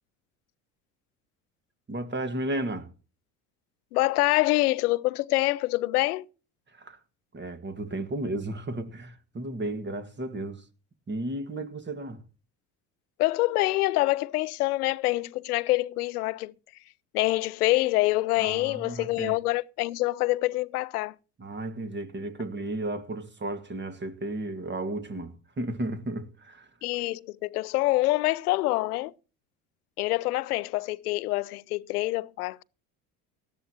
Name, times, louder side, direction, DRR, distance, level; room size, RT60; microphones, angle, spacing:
voice 1, 1.9-2.9 6.7-7.0 7.3-10.7 11.1-12.2 18.4-19.4 21.4-26.7, right 1 dB, 25° right, 1.8 m, -34 dB
voice 2, 3.9-6.3 13.2-16.5 17.1-21.1 26.8-29.1 30.0-32.6, left 19 dB, 85° left, 0.6 m, -26 dB
18.0 x 13.0 x 2.9 m
hypercardioid pair, 70°, 44 cm